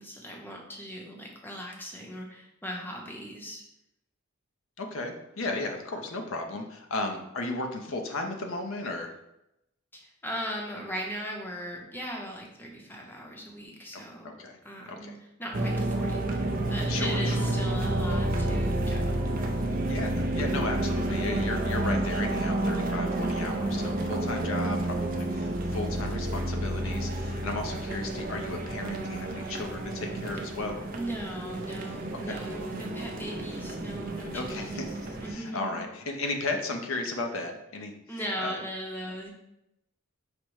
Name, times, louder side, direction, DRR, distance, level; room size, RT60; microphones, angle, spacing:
voice 1, 0.0-3.6 9.9-14.3 14.6-16.4 16.7-19.2 23.2-23.7 30.9-34.9 35.2-35.8 38.1-39.3, equal, 10° left, -1 dB, 0.7 m, -38 dB
voice 2, 4.8-9.1 13.9-14.6 14.9-15.1 16.9-17.5 19.9-30.9 32.2-32.3 34.3-37.9 38.4-38.6, left 2 dB, 75° left, 4 dB, 0.6 m, -35 dB
sound 1, 15.5-35.3, right 1 dB, 40° right, 0.5 m, -30 dB
5.0 x 2.1 x 4.6 m, 0.86 s
head